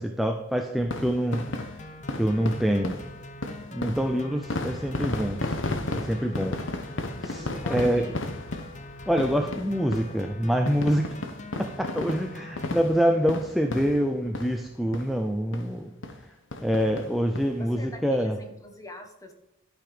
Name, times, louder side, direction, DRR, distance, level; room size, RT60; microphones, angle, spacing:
voice 1, 0.0-1.5 2.2-3.0 3.7-5.5 5.9-6.6 7.2-8.0 9.1-11.2 11.6-15.9 16.6-18.4, equal, ahead, 3 dB, 0.6 m, -26 dB
sound 1, 0.8-14.7 14.9-15.1 15.5-15.6 16.0-16.2 16.5-17.5 17.9-18.0 18.2-18.3, left 2 dB, 65° left, 1.0 m, -34 dB
sound 2, 1.3-12.8, left 2 dB, 35° left, 0.8 m, -44 dB
voice 2, 7.2-8.1 17.6-19.3, left 2 dB, 15° left, 4 dB, 1.4 m, -43 dB
12.0 x 6.0 x 5.1 m, 0.91 s
head